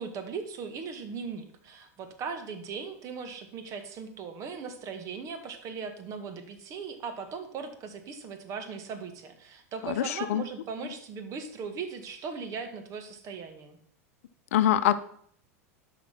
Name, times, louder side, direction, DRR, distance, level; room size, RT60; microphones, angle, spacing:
voice 1, 0.0-13.8, right 5 dB, 40° right, 7 dB, 1.9 m, -38 dB
voice 2, 9.8-10.4 14.5-15.0, left 11 dB, 65° left, 13 dB, 0.7 m, -24 dB
11.0 x 5.9 x 6.0 m, 0.64 s
hypercardioid pair, 90°, 8 cm